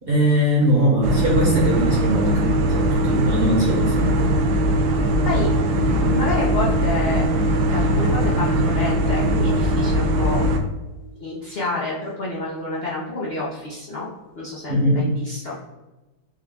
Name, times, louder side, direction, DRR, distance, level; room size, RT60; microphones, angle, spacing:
voice 1, 0.0-4.1 14.7-15.0, right 1 dB, 40° right, -5 dB, 1.0 m, -20 dB
sound 1, 1.0-10.6, right 1 dB, 80° right, 1.3 m, -20 dB
voice 2, 5.8-7.2 7.7-10.4 11.2-14.1 14.4-15.6, left 2 dB, 60° left, -6 dB, 0.6 m, -28 dB
4.8 x 2.3 x 3.5 m, 1.1 s
omnidirectional pair, 2.2 m